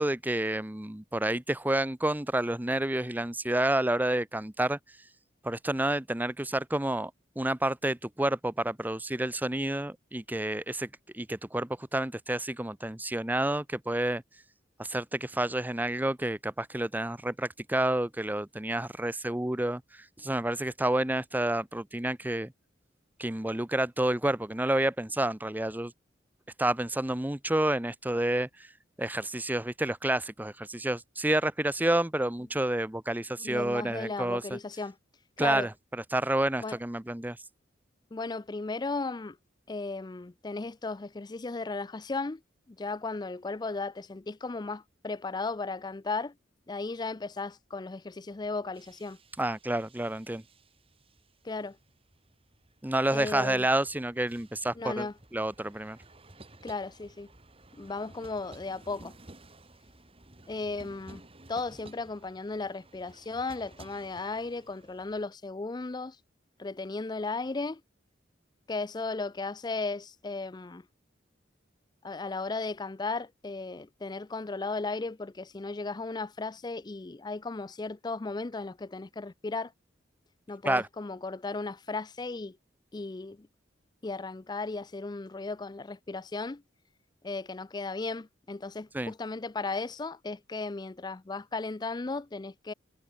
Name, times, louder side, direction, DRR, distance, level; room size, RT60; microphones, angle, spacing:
voice 1, 0.0-4.8 5.4-7.1 7.4-10.9 11.1-14.2 14.8-19.8 20.2-22.5 23.2-25.9 26.6-28.5 29.0-34.6 35.4-35.7 36.1-37.4 49.4-50.4 52.8-55.1 55.3-56.0 80.6-80.9 88.9-89.1, right 1 dB, 10° right, 0.8 m, -29 dB
voice 2, 33.4-35.0 35.4-35.7 36.6-36.8 38.1-39.4 39.7-42.4 42.7-46.3 46.7-49.2 51.4-51.8 53.1-53.7 54.8-55.1 56.6-57.3 57.8-59.1 60.5-61.2 61.5-66.2 66.6-67.8 68.7-70.8 72.0-79.7 80.5-82.6 82.9-83.5 84.0-86.6 87.2-92.7, left 3 dB, 25° left, 0.4 m, -35 dB
sound 1, 48.3-65.3, right 2 dB, 30° right, 3.2 m, -55 dB
head